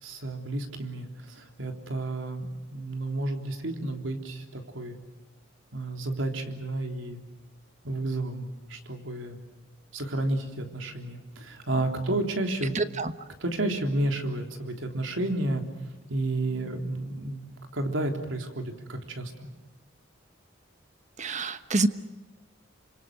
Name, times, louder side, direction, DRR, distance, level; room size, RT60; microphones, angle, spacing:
voice 1, 0.0-5.0 5.7-7.2 7.8-9.4 9.9-12.8 13.4-15.6 16.1-17.4 17.7-19.3, right 2 dB, 90° right, 4 dB, 3.5 m, -31 dB
voice 2, 12.7-13.1 21.2-21.9, right 3 dB, 40° right, 11 dB, 1.3 m, -26 dB
28.5 x 25.5 x 6.6 m, 1.2 s
head